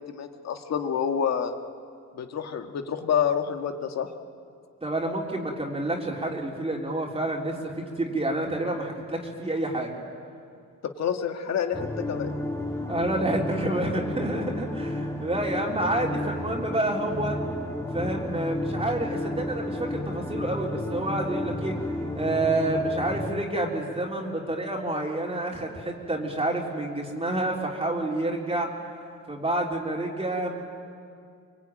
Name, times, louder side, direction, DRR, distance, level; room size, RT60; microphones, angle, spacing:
voice 1, 0.1-1.6 2.2-4.1 11.0-12.3, left 8 dB, 60° left, 5 dB, 2.0 m, -28 dB
voice 2, 4.8-9.9 12.9-17.4 17.9-21.8 22.1-28.7 29.3-30.6, right 1 dB, 20° right, -1 dB, 3.6 m, -28 dB
sound 1, 11.7-23.3, left 1 dB, 10° left, 1.9 m, -32 dB
25.0 x 23.0 x 9.2 m, 2.4 s
cardioid pair, 90°, 30 cm